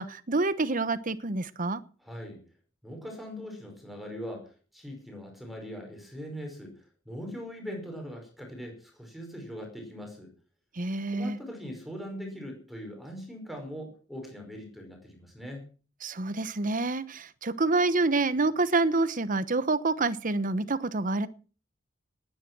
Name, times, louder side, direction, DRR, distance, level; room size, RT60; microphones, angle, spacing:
voice 1, 0.0-1.8 10.8-11.4 16.0-21.3, right 3 dB, 45° right, 14 dB, 1.1 m, -27 dB
voice 2, 2.0-2.4 2.8-6.7 7.1-10.3 11.1-15.7, equal, ahead, 2 dB, 5.3 m, -41 dB
19.0 x 10.5 x 6.2 m, 0.38 s
head